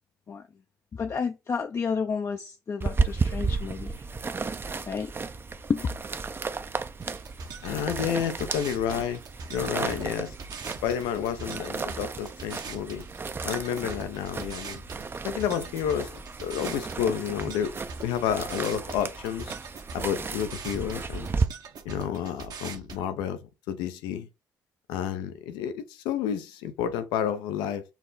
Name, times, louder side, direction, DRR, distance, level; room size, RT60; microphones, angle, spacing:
voice 1, 0.9-4.0 4.9-5.1 5.7-5.9, left 5 dB, 40° left, 0.5 m, -30 dB
sound 1, 2.8-21.5, right 4 dB, 30° right, 0.5 m, -33 dB
sound 2, 7.0-23.0, right 4 dB, 60° right, 1.0 m, -42 dB
voice 2, 7.6-9.2 9.5-10.4 10.8-13.1 13.4-14.8 15.2-17.7 18.0-19.5 19.9-21.3 21.8-23.4 23.7-24.3 24.9-27.8, left 9 dB, 85° left, 0.7 m, -30 dB
5.8 x 2.2 x 4.1 m
supercardioid pair, 60°, 8 cm